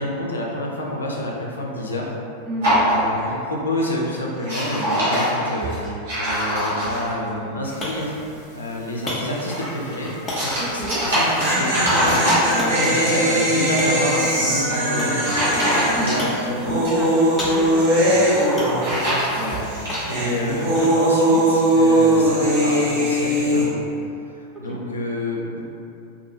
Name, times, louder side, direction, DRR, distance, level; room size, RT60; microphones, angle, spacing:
voice 1, 0.0-2.2 2.8-5.8 6.2-8.2 8.5-12.2 12.8-15.4 16.0-16.2 16.5-16.8 18.0-18.1 19.4-23.9 24.3-25.6, left 1 dB, 75° left, -2 dB, 0.4 m, -28 dB
voice 2, 2.5-2.8 10.6-11.0 12.5-12.9 15.9-17.9 18.7-18.9 19.3-19.6 24.7-24.8, right 1 dB, 20° right, -3 dB, 0.5 m, -31 dB
sound 1, 2.6-3.5 3.8-4.1 4.4-7.3 9.1-13.1 14.5-14.7 15.2-16.4 16.7-17.7 18.3-20.0, equal, 65° right, 1.1 m, -24 dB
sound 2, 7.2-22.8, left 1 dB, 20° left, 0.7 m, -36 dB
sound 3, 7.6-8.0 8.2-8.3 11.0-19.4 19.6-23.6, equal, 45° right, 0.7 m, -20 dB
2.6 x 2.6 x 2.6 m, 2.6 s
figure-of-eight pair, 90°, 0 cm